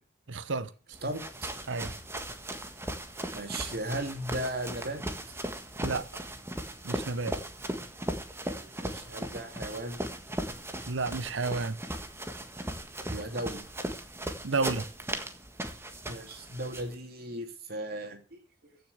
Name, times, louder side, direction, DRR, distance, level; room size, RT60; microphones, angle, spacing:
voice 1, 0.3-0.7 1.7-1.9 5.8-6.1 6.8-7.4 10.9-11.8 14.4-14.9, right 3 dB, 75° right, 0.9 m, -31 dB
sound 1, 0.9-16.9, right 1 dB, 15° right, 1.6 m, -38 dB
voice 2, 1.0-1.5 3.3-5.0 8.5-10.1 13.1-13.6 16.1-18.8, right 1 dB, 55° right, 2.9 m, -37 dB
15.5 x 6.8 x 8.0 m
head